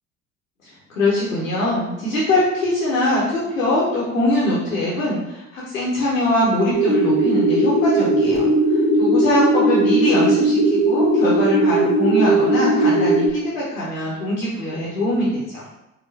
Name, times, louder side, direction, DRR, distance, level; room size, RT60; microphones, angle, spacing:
voice 1, 0.6-8.4 8.7-15.6, left 1 dB, 90° left, -7 dB, 0.8 m, -22 dB
sound 1, 6.7-13.3, right 1 dB, 20° right, 1.2 m, -18 dB
4.6 x 2.1 x 3.2 m, 0.93 s
figure-of-eight pair, 55°, 40 cm